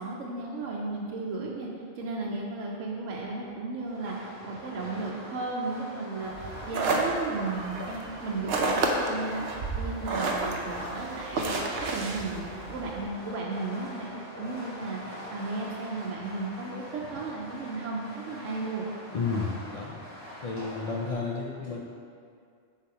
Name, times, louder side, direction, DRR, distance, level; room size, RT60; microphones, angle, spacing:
voice 1, 0.0-1.7 2.0-9.5 9.8-11.5 11.9-14.1 14.4-18.9, right 3 dB, 90° right, -3 dB, 1.0 m, -34 dB
Fireworks, 3.8-21.1, equal, 90° left, 2.1 m, -44 dB
sound 1, 6.3-13.1, right 3 dB, 60° right, 0.8 m, -31 dB
voice 2, 19.1-20.0 20.4-21.8, left 4 dB, 70° left, -2 dB, 0.3 m, -31 dB
5.7 x 4.1 x 4.7 m, 2.2 s
omnidirectional pair, 1.3 m